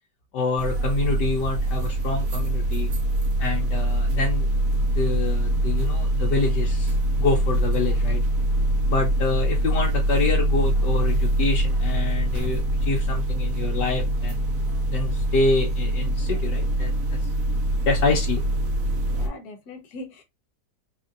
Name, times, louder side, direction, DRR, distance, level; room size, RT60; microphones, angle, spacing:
voice 1, 0.3-2.9 3.4-4.5 5.0-8.2 8.9-14.4 14.9-17.2 17.9-18.4, left 3 dB, 80° left, 1.4 m, -27 dB
sound 1, 0.6-19.3, right 1 dB, 60° right, 1.1 m, -23 dB
voice 2, 19.1-20.2, left 2 dB, 65° left, 1.5 m, -40 dB
4.2 x 2.7 x 2.5 m
omnidirectional pair, 1.8 m